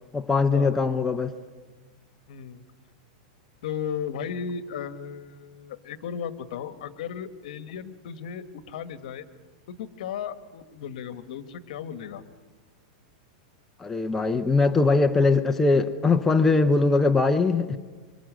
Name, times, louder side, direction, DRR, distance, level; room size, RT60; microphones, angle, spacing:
voice 1, 0.1-1.3 13.8-17.8, left 3 dB, 5° left, 0.6 m, -21 dB
voice 2, 2.3-2.6 3.6-9.3 9.7-12.2, left 7 dB, 60° left, 1.6 m, -35 dB
26.5 x 24.0 x 6.3 m
supercardioid pair, 160°, 4 cm